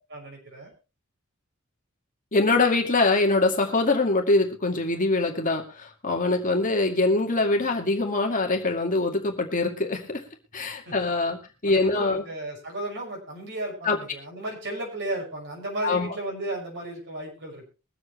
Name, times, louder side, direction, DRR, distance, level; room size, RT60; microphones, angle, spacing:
voice 1, 0.1-0.7 10.8-10.9 11.6-17.7, right 1 dB, 60° right, -1 dB, 6.5 m, -34 dB
voice 2, 2.3-10.2 10.5-12.2 13.8-14.0 15.8-16.1, left 3 dB, 40° left, 2 dB, 2.2 m, -23 dB
23.0 x 8.0 x 3.3 m, 0.32 s
head